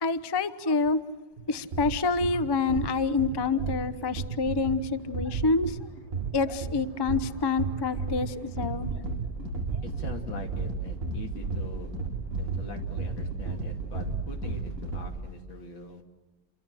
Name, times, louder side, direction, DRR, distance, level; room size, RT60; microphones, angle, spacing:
voice 1, 0.0-1.0 1.5-5.8 6.3-8.9, left 4 dB, 30° left, 13 dB, 0.4 m, -27 dB
sound 1, 1.4-15.0, right 4 dB, 40° right, 1.1 m, -35 dB
sound 2, 6.7-15.2, right 3 dB, 45° left, 8.6 m, -37 dB
voice 2, 9.8-11.9 12.4-16.0, left 3 dB, 90° left, 4 dB, 3.3 m, -43 dB
29.0 x 24.0 x 7.7 m, 1.2 s
omnidirectional pair, 2.0 m